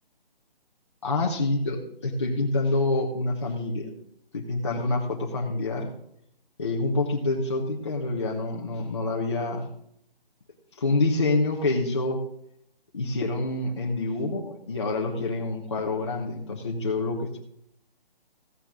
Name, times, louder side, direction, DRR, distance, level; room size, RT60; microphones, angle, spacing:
voice 1, 1.0-3.9 4.3-5.9 6.6-9.7 10.8-12.2 12.9-17.4, left 2 dB, 30° left, -2 dB, 1.2 m, -27 dB
15.0 x 9.0 x 3.8 m, 0.72 s
hypercardioid pair, 175°, 30 cm